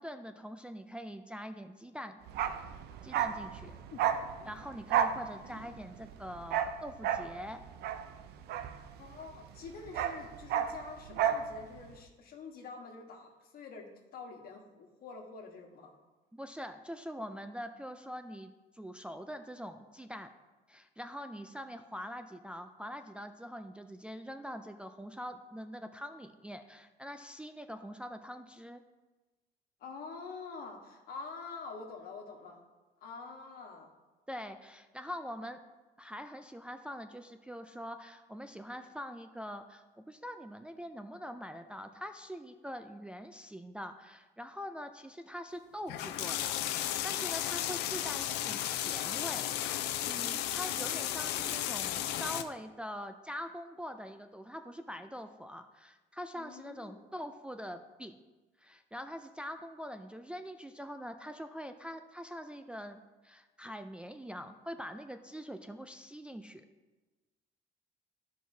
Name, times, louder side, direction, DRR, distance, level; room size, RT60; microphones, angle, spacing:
voice 1, 0.0-2.2 3.0-3.8 4.5-7.6 16.3-20.3 20.7-28.8 34.3-35.6 36.0-49.8 50.1-58.2 58.6-66.6, equal, 5° right, 6 dB, 0.3 m, -44 dB
Bark, 2.3-9.3 9.6-11.5 11.7-11.9, right 9 dB, 75° right, 0.5 m, -32 dB
voice 2, 9.0-15.9 29.8-32.6 33.0-33.9 56.3-57.0, left 4 dB, 65° left, 2 dB, 1.3 m, -46 dB
sound 1, 45.9-52.4, left 12 dB, 85° left, 0.5 m, -34 dB
13.5 x 4.7 x 2.7 m, 1.2 s
cardioid pair, 110°, 17 cm